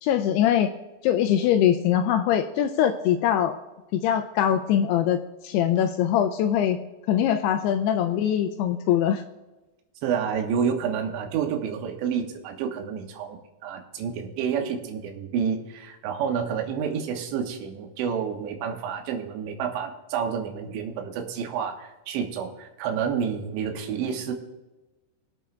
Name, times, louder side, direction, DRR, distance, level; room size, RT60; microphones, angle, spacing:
voice 1, 0.0-0.7 1.0-3.5 3.9-6.8 7.1-9.2, left 10 dB, 90° left, 7 dB, 2.3 m, -22 dB
voice 2, 10.0-24.3, right 7 dB, 80° right, 3 dB, 3.4 m, -29 dB
23.5 x 8.5 x 2.3 m, 1.1 s
omnidirectional pair, 5.2 m